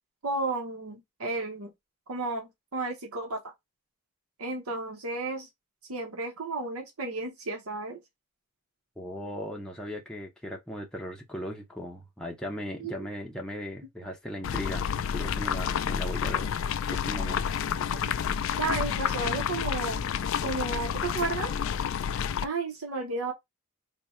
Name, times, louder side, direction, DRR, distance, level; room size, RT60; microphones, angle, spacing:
voice 1, 0.2-1.7 2.1-3.5 4.4-5.5 5.9-8.0 12.8-13.1 17.9-18.0 18.6-20.1 20.4-21.5 22.4-23.3, right 3 dB, 80° right, 0.9 m, -33 dB
voice 2, 9.0-17.9, equal, 5° left, 0.6 m, -38 dB
sound 1, 14.4-22.4, left 8 dB, 60° left, 0.3 m, -29 dB
3.4 x 2.2 x 4.2 m
head